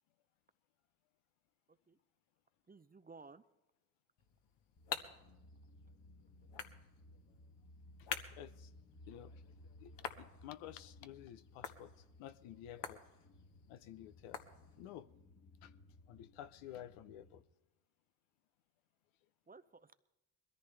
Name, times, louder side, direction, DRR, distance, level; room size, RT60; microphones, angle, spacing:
voice 1, 2.7-3.4 19.5-20.0, right 4 dB, 20° right, 0.7 m, -57 dB
sound 1, 4.2-15.1, left 7 dB, 55° left, 1.6 m, -50 dB
sound 2, 4.8-17.4, left 1 dB, 40° left, 2.1 m, -60 dB
voice 2, 8.0-8.7 9.1-9.3 9.8-9.9 10.2-13.0 13.7-14.4 14.8-15.1 15.6-15.7 16.1-17.4, left 12 dB, 70° left, 0.9 m, -52 dB
22.0 x 14.0 x 3.4 m
hypercardioid pair, 60°, 50 cm